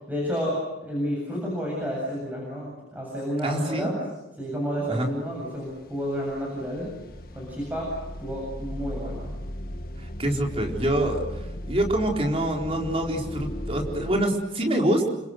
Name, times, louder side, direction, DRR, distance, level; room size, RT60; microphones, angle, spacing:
voice 1, 0.1-3.9 4.4-6.9 7.3-7.9 8.2-9.4, equal, 10° right, -4 dB, 7.7 m, -30 dB
voice 2, 3.4-3.9 4.9-5.1 10.0-15.1, right 1 dB, 30° right, 1 dB, 4.3 m, -26 dB
sound 1, 5.2-5.4 5.7-14.3, left 1 dB, 55° left, 1.8 m, -37 dB
29.5 x 26.0 x 6.5 m, 1.0 s
head